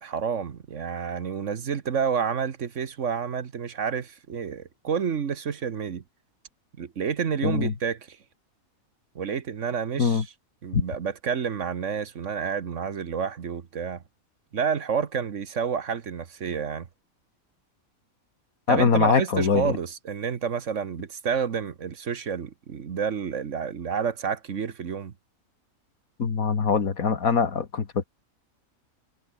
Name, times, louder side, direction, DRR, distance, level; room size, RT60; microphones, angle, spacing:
voice 1, 0.0-6.0 6.8-8.2 9.1-10.3 10.6-14.0 14.5-16.9 18.7-25.1, right 6 dB, 60° right, 1.5 m, -29 dB
voice 2, 7.4-7.7 10.0-10.2 10.7-10.8 18.7-19.7 26.2-28.0, left 5 dB, 80° left, 2.4 m, -23 dB
omnidirectional pair, 1.5 m